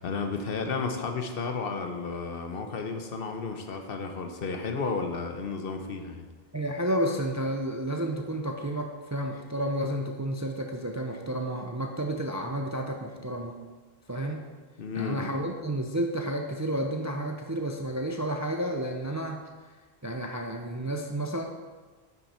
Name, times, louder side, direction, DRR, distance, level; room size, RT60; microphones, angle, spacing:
voice 1, 0.0-6.3 14.8-15.3, left 4 dB, 65° left, 5 dB, 1.0 m, -32 dB
voice 2, 6.5-13.6 14.1-14.4 14.9-19.4 20.0-21.4, right 1 dB, 25° right, 3 dB, 0.4 m, -31 dB
9.2 x 6.0 x 4.3 m, 1.4 s
omnidirectional pair, 1.1 m